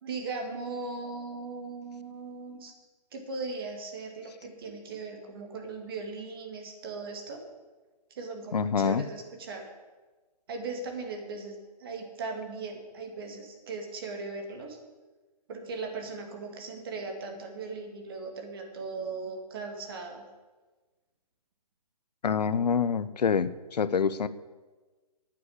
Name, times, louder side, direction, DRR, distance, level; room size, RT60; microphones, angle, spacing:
voice 1, 0.0-2.7 3.1-7.4 8.1-9.6 10.5-14.8 15.5-20.2, right 3 dB, 35° right, 4 dB, 2.2 m, -38 dB
voice 2, 8.5-9.0 22.2-24.3, left 6 dB, 75° left, 15 dB, 0.8 m, -26 dB
9.5 x 9.3 x 8.6 m, 1.3 s
hypercardioid pair, 170°, 21 cm